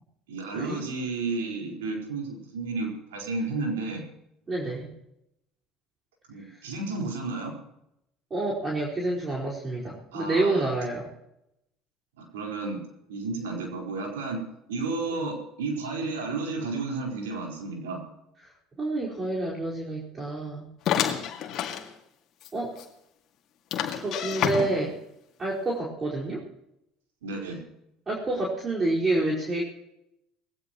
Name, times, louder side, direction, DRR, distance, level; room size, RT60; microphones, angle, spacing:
voice 1, 0.3-4.0 6.3-7.6 10.1-10.7 12.2-12.8 13.1-14.4 14.7-18.0 27.2-27.6, right 3 dB, 85° right, 1 dB, 4.6 m, -32 dB
voice 2, 4.5-4.9 8.3-11.1 15.1-15.3 18.8-20.7 22.5-22.7 23.9-25.0 25.4-26.4 28.1-29.6, right 2 dB, 30° right, -5 dB, 4.8 m, -28 dB
sound 1, 20.9-21.9 22.4-22.5 22.8-22.9 23.7-25.0, left 9 dB, 55° left, 2.2 m, -28 dB
20.0 x 17.0 x 3.1 m, 0.82 s
hypercardioid pair, 75°, 0 cm